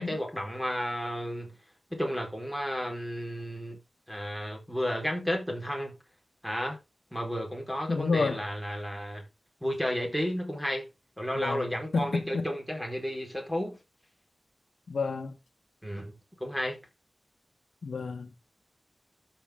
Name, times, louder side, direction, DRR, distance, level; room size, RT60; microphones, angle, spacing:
voice 1, 0.0-1.5 1.9-3.8 4.1-5.9 6.4-6.8 7.1-9.2 9.6-10.9 11.2-13.8 15.8-16.1 16.4-16.9, equal, 5° right, 4.5 m, -32 dB
voice 2, 7.9-8.4 11.3-12.5 14.9-15.4 17.8-18.3, left 4 dB, 85° left, 1.3 m, -30 dB
13.0 x 5.8 x 3.7 m
wide cardioid pair, 85°, 0 cm